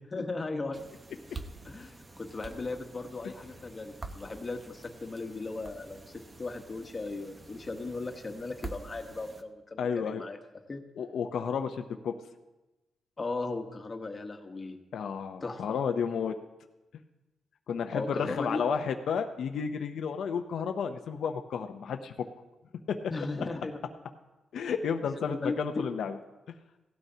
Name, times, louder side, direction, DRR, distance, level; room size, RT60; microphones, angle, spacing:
voice 1, 0.1-0.8 1.6-6.0 6.4-10.4 10.7-10.8 13.2-14.8 15.4-15.8 17.9-18.6 23.1-23.8 25.3-25.9, left 3 dB, 25° left, 4 dB, 1.2 m, -37 dB
sound 1, 0.7-9.4, right 3 dB, 20° right, 0.7 m, -47 dB
voice 2, 9.8-10.2 11.0-12.1 14.9-16.3 17.7-22.3 22.9-23.0 24.5-26.2, left 6 dB, 70° left, 5 dB, 0.6 m, -32 dB
16.5 x 12.5 x 2.8 m, 1.1 s
cardioid pair, 125°, 0 cm